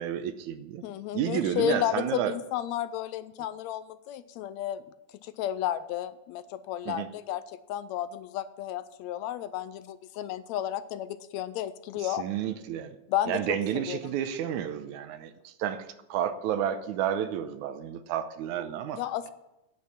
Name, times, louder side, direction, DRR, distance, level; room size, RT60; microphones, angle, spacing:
voice 1, 0.0-0.8 1.1-2.3 6.9-7.1 12.0-13.0 13.3-19.0, right 9 dB, 85° right, 10 dB, 2.2 m, -31 dB
voice 2, 0.8-4.8 5.2-7.4 7.7-12.2 13.1-14.0 18.9-19.3, left 12 dB, 80° left, 14 dB, 1.7 m, -32 dB
9.7 x 9.3 x 7.1 m, 0.93 s
omnidirectional pair, 3.4 m